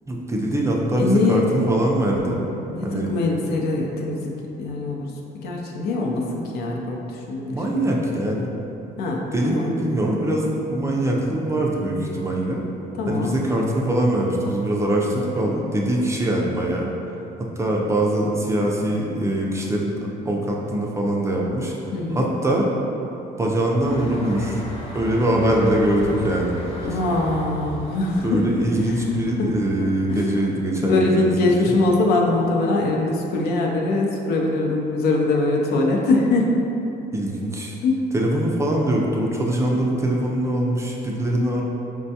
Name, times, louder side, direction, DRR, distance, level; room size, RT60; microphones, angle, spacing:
voice 1, 0.1-2.4 2.8-3.1 7.5-8.5 9.3-12.6 13.1-16.9 17.4-20.0 20.3-21.7 22.1-22.7 23.4-24.6 24.9-26.9 28.2-31.8 37.1-37.8 38.1-41.6, right 1 dB, 15° right, -2 dB, 0.4 m, -23 dB
voice 2, 1.0-1.5 2.7-4.3 4.6-5.1 5.4-7.8 9.0-9.7 13.0-13.4 21.9-22.2 26.8-28.5 29.4-29.5 30.1-30.2 30.8-36.5 37.8-38.0, left 2 dB, 70° left, -1 dB, 0.5 m, -22 dB
sound 1, 23.8-30.3, equal, 35° left, 0.7 m, -36 dB
4.4 x 2.2 x 2.7 m, 2.9 s
cardioid pair, 110°, 17 cm